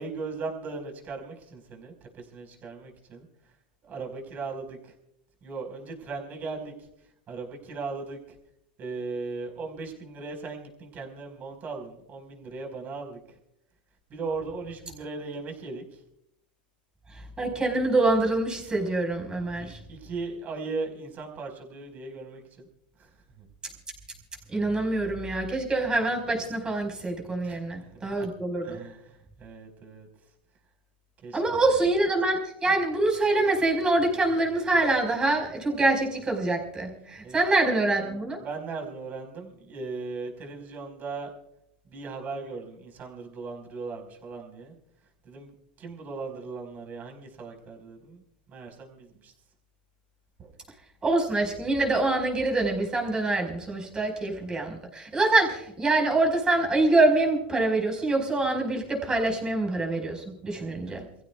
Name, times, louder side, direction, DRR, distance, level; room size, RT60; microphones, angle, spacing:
voice 1, 0.0-3.2 3.9-4.9 5.4-6.7 7.3-8.2 8.8-13.2 14.1-15.8 19.6-22.7 23.0-23.1 23.4-23.5 27.4-27.6 27.9-28.3 28.6-30.1 31.2-31.6 37.2-37.4 38.4-41.3 41.8-44.7 45.2-45.5 45.8-48.2 48.5-49.3 50.4-50.5 60.5-61.1, right 4 dB, 35° right, 2 dB, 4.9 m, -38 dB
voice 2, 17.4-19.8 24.5-28.8 31.3-38.4 51.0-61.0, right 2 dB, 15° right, 1 dB, 5.0 m, -25 dB
29.0 x 15.5 x 2.4 m, 0.78 s
supercardioid pair, 120°, 5 cm